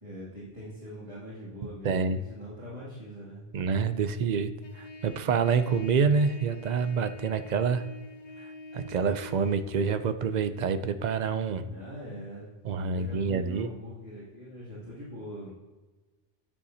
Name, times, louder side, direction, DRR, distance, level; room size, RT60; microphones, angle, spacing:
voice 1, 0.0-3.5 11.7-12.5 12.8-15.5, equal, 25° right, -10 dB, 2.7 m, -42 dB
voice 2, 1.8-2.2 3.5-4.5 4.8-7.9 8.7-11.6 12.6-13.7, right 5 dB, 60° right, 10 dB, 0.5 m, -27 dB
Trumpet, 4.6-9.6, left 1 dB, 40° left, 0.5 m, -46 dB
9.7 x 7.0 x 2.7 m, 1.2 s
omnidirectional pair, 1.2 m